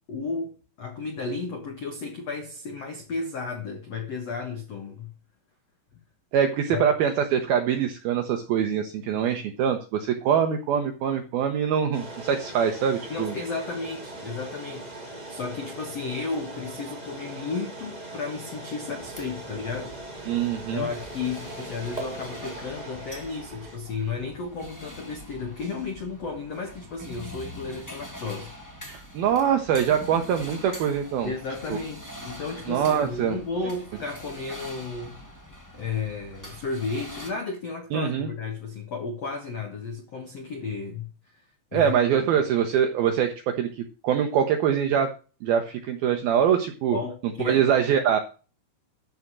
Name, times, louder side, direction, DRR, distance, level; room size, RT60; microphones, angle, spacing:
voice 1, 0.1-5.1 6.7-6.9 13.1-14.9 15.3-19.9 20.7-28.5 31.2-35.2 35.7-41.4 41.7-41.9 46.9-47.7, left 4 dB, 80° left, 1.4 m, -33 dB
voice 2, 6.3-13.3 20.3-20.9 28.9-31.3 31.7-31.8 32.7-33.4 37.9-38.3 41.7-45.1 45.4-47.0 47.5-48.2, right 8 dB, 80° right, 2.2 m, -24 dB
sound 1, 11.9-23.8, right 2 dB, 20° right, 1.2 m, -40 dB
sound 2, 19.0-37.3, equal, 10° left, 1.0 m, -44 dB
13.0 x 5.0 x 7.4 m
omnidirectional pair, 5.6 m